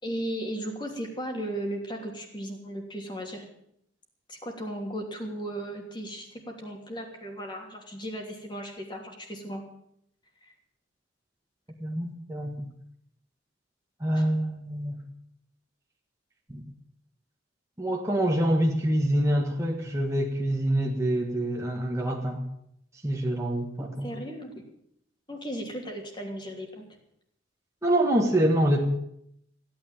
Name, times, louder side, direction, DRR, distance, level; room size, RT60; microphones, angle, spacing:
voice 1, 0.0-3.4 4.3-9.6 10.4-10.5 14.2-14.3 24.0-24.5 25.3-26.8, right 1 dB, 25° left, 2 dB, 3.1 m, -36 dB
voice 2, 11.8-12.7 14.0-15.0 16.5-16.7 17.8-22.5 23.0-24.1 27.8-28.9, right 1 dB, 15° right, -1 dB, 1.8 m, -26 dB
16.5 x 9.6 x 8.9 m, 0.73 s
head